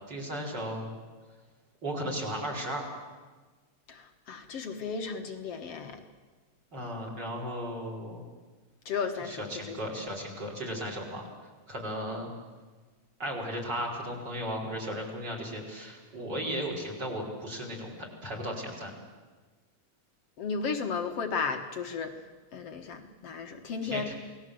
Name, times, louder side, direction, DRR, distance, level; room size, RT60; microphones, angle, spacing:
voice 1, 0.1-0.9 1.8-2.8 6.7-8.2 9.3-11.3 11.7-12.3 13.2-18.9 23.8-24.2, equal, 30° right, 1 dB, 5.0 m, -35 dB
voice 2, 3.9-6.0 8.9-9.8 20.4-22.1 22.5-24.1, left 5 dB, 55° left, 5 dB, 2.0 m, -34 dB
29.0 x 19.5 x 7.8 m, 1.4 s
omnidirectional pair, 4.0 m